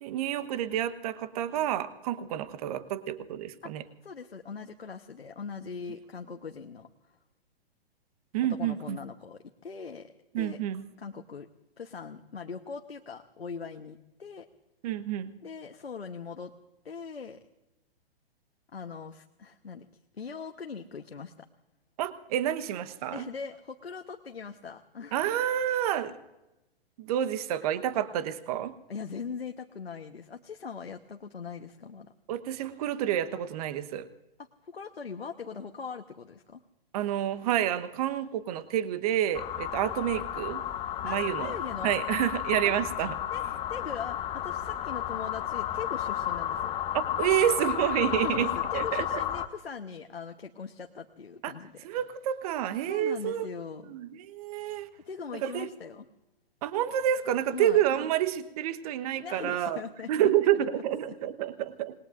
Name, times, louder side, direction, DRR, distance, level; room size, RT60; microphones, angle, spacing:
voice 1, 0.0-3.8 8.3-9.0 10.3-10.8 14.8-15.3 22.0-23.3 25.1-26.2 27.0-28.7 32.3-34.1 36.9-40.6 41.0-41.5 41.8-43.1 46.9-49.2 51.4-51.5 51.8-53.5 53.9-54.9 55.4-55.7 56.6-59.8 60.1-62.0, right 11 dB, 40° right, 12 dB, 1.1 m, -29 dB
voice 2, 4.0-7.2 8.5-10.6 11.0-11.5 11.8-14.5 15.4-16.5 16.8-17.4 18.7-19.9 20.1-21.5 23.1-25.3 28.9-32.1 34.4-36.6 41.0-41.9 42.6-42.7 43.3-46.7 48.1-51.8 52.9-53.9 55.0-56.1 57.5-57.8 59.2-60.6 61.1-61.2, left 5 dB, 80° left, 5 dB, 1.1 m, -41 dB
sound 1, 39.3-49.5, left 11 dB, 15° left, 0.8 m, -32 dB
27.5 x 20.5 x 2.5 m, 0.96 s
figure-of-eight pair, 120°, 31 cm